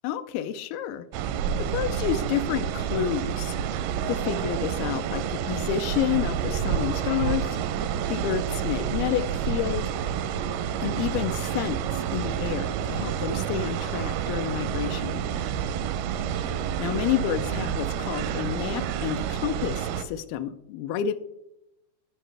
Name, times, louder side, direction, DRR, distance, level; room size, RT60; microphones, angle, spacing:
voice 1, 0.0-1.1 1.6-3.6 4.1-7.6 8.1-9.9 10.8-15.2 16.8-21.1, left 10 dB, 90° left, 9 dB, 2.5 m, -29 dB
sound 1, 1.1-20.0, right 8 dB, 85° right, 2.5 m, -29 dB
14.5 x 5.3 x 3.3 m, 0.86 s
omnidirectional pair, 4.3 m